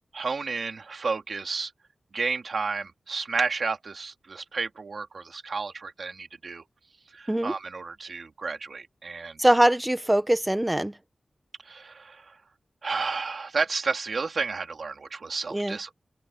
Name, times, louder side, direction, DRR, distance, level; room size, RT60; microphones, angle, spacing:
voice 1, 0.1-1.7 2.1-6.6 7.1-9.4 11.6-12.4 12.8-16.0, right 4 dB, 65° right, 2.8 m, -31 dB
voice 2, 9.4-10.9 15.5-15.8, right 1 dB, 10° right, 1.2 m, -22 dB
open air
wide cardioid pair, 105°, 0 cm